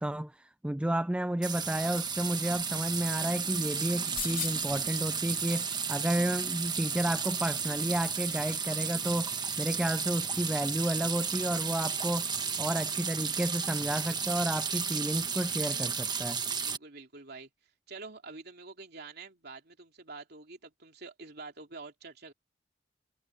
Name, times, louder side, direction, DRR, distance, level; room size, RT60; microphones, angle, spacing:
voice 1, 0.0-9.3 9.6-12.3 12.6-16.4, right 1 dB, 5° right, 0.3 m, -31 dB
Water into bucket, 1.4-16.8, right 6 dB, 25° right, 1.2 m, -33 dB
sound 1, 4.1-4.8 6.3-8.1 8.4-8.5, left 10 dB, 50° left, 2.6 m, -41 dB
voice 2, 16.6-17.5 17.9-22.3, right 3 dB, 60° right, 3.1 m, -47 dB
head